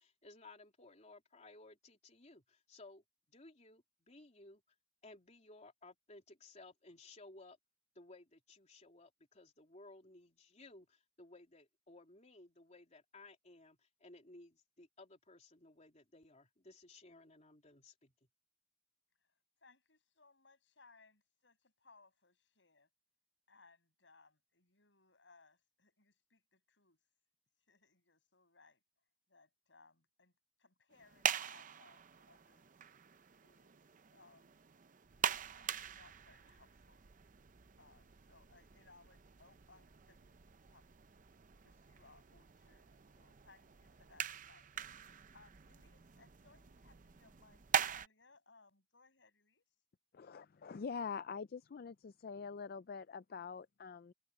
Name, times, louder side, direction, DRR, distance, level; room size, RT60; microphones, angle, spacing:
voice 1, 0.0-4.6 5.0-7.6 7.9-18.1, left 2 dB, 40° left, 3.3 m, -59 dB
voice 2, 19.6-22.9 23.5-27.0 27.7-28.8 29.3-30.3 30.6-32.8 33.4-34.6 35.4-37.0 37.8-41.1 41.6-49.6, left 3 dB, 80° left, 8.0 m, -67 dB
sound 1, 30.9-48.1, right 8 dB, 45° right, 0.6 m, -43 dB
voice 3, 50.1-54.1, left 5 dB, 55° left, 0.4 m, -45 dB
head